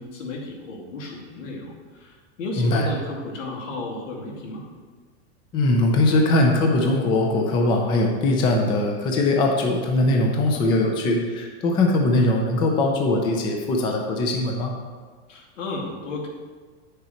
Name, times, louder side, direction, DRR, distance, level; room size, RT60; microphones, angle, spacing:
voice 1, 0.0-4.7 15.3-16.3, left 2 dB, 85° left, -1 dB, 2.5 m, -33 dB
voice 2, 5.5-14.7, left 2 dB, 15° left, 1 dB, 0.5 m, -21 dB
9.4 x 6.6 x 4.4 m, 1.5 s
supercardioid pair, 170°, 37 cm